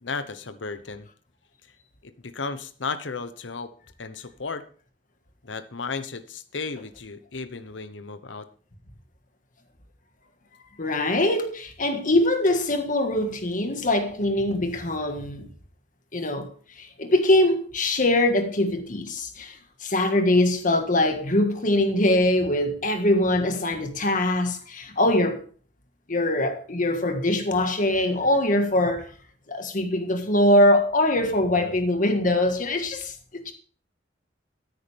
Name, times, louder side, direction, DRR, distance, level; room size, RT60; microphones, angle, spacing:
voice 1, 0.0-1.1 2.0-3.7 4.0-4.7 5.4-8.5 31.5-31.7, left 4 dB, 80° left, 1.0 m, -34 dB
voice 2, 10.8-15.5 16.1-25.4 26.1-29.1 29.5-33.5, left 1 dB, 45° left, 1.7 m, -23 dB
13.5 x 9.5 x 3.5 m
head